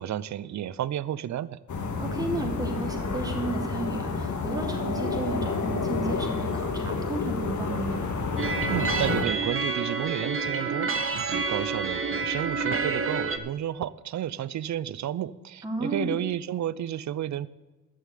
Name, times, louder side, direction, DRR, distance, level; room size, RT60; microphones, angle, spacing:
voice 1, 0.0-1.6 8.7-17.5, right 11 dB, 55° right, 19 dB, 0.6 m, -32 dB
sound 1, 1.7-9.3, left 4 dB, 55° left, 1.9 m, -30 dB
voice 2, 2.0-8.1 15.6-16.1, right 2 dB, 10° right, 1 dB, 3.2 m, -33 dB
sound 2, 8.4-13.4, right 4 dB, 40° right, 1.2 m, -28 dB
11.0 x 7.3 x 8.4 m, 1.1 s
supercardioid pair, 60°, 35 cm